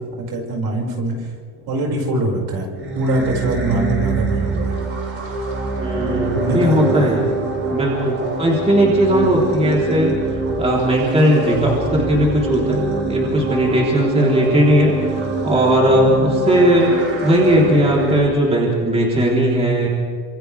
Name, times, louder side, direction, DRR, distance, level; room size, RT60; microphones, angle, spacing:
voice 1, 0.2-1.1 1.7-2.7 2.9-4.8 6.3-7.2, right 1 dB, 60° right, -1 dB, 6.1 m, -23 dB
sound 1, 2.8-18.2, right 3 dB, 30° right, 4.7 m, -24 dB
voice 2, 5.8-7.3 7.7-10.1 10.6-12.8 13.1-19.9, equal, 15° right, -3 dB, 3.9 m, -17 dB
27.5 x 26.5 x 3.6 m, 2.1 s
cardioid pair, 140°, 42 cm